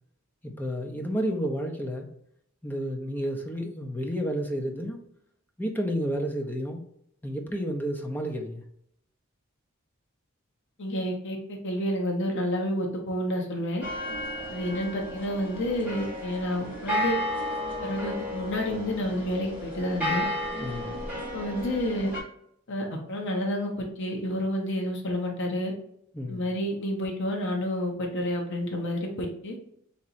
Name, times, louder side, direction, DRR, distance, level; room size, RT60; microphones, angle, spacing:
voice 1, 0.4-2.1 2.6-5.0 5.6-6.8 7.2-8.6 20.6-21.0 26.1-26.4, equal, 10° left, 2 dB, 0.5 m, -31 dB
voice 2, 10.8-13.8 14.5-17.1 17.8-20.2 21.3-22.1 22.7-23.7 24.0-25.7 26.3-29.6, equal, 60° left, 1 dB, 0.8 m, -29 dB
sound 1, 13.8-22.2, left 1 dB, 10° right, 1.5 m, -33 dB
4.2 x 2.9 x 2.5 m, 0.72 s
head